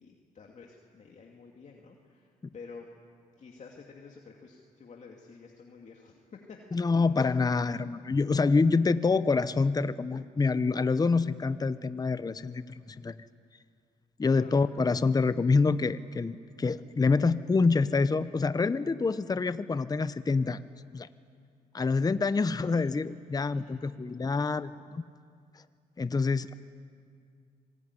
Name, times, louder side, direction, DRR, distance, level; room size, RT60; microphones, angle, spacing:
voice 1, 0.0-2.9 3.4-7.5 14.3-14.6 22.3-22.9 23.5-23.8, left 5 dB, 50° left, 0 dB, 2.6 m, -50 dB
voice 2, 6.7-13.2 14.2-20.6 20.9-21.1 21.7-25.0 26.0-26.5, left 4 dB, 25° left, 14 dB, 0.8 m, -26 dB
25.5 x 20.0 x 9.9 m, 2.2 s
cardioid pair, 75°, 16 cm